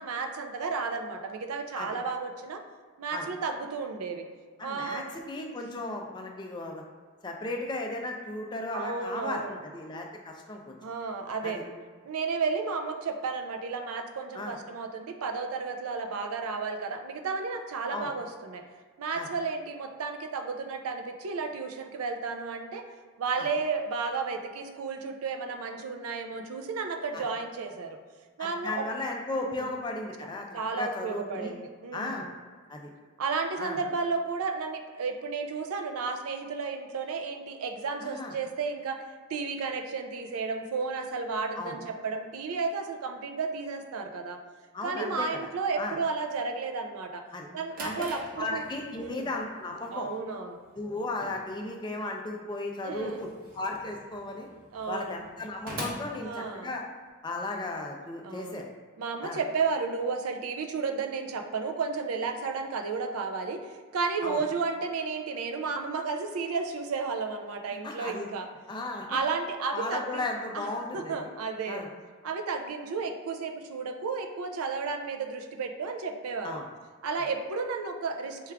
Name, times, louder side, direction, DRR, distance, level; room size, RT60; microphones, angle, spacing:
voice 1, 0.0-2.6 3.0-4.2 4.6-5.0 5.5-5.6 8.7-9.6 10.8-11.6 12.0-18.6 19.0-22.8 23.2-28.0 28.4-28.9 29.3-29.7 30.5-32.3 33.2-39.0 39.3-44.4 44.8-47.2 47.5-48.6 49.0-49.3 49.9-50.6 52.8-53.3 54.7-55.2 56.1-56.7 58.2-58.7 59.0-68.5 69.1-70.2 70.5-71.8 72.2-76.6 77.0-78.5, right 4 dB, 85° right, 6 dB, 0.4 m, -33 dB
voice 2, 4.6-6.8 7.2-10.8 11.4-11.6 14.3-14.5 17.9-18.1 19.1-19.3 23.4-23.5 27.1-27.2 28.4-30.5 30.7-31.5 31.9-32.3 32.7-32.9 33.6-33.8 38.0-38.3 41.6-41.8 44.7-45.3 45.8-45.9 47.3-47.5 47.8-47.9 48.4-50.1 50.7-53.3 53.5-54.5 54.9-56.8 57.2-58.7 59.2-59.4 64.2-64.4 67.8-68.3 68.7-69.2 69.7-71.3 71.7-71.9 76.4-76.7, left 2 dB, 20° left, 2 dB, 0.3 m, -35 dB
Drawer open or close, 47.4-57.1, right 1 dB, 40° right, 0.7 m, -45 dB
4.4 x 2.3 x 3.4 m, 1.5 s
head